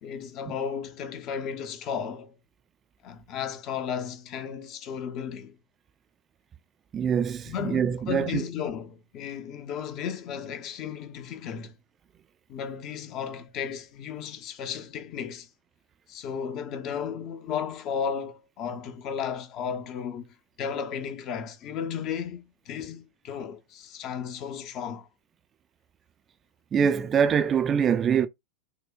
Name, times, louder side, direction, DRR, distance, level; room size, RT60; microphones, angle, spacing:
voice 1, 0.0-2.4 3.0-5.6 7.4-11.8 12.5-15.5 16.1-25.1, left 7 dB, 35° left, 0.6 m, -34 dB
voice 2, 6.9-8.4 26.7-28.3, right 7 dB, 25° right, 0.3 m, -24 dB
4.7 x 2.1 x 2.4 m
figure-of-eight pair, 90°, 0 cm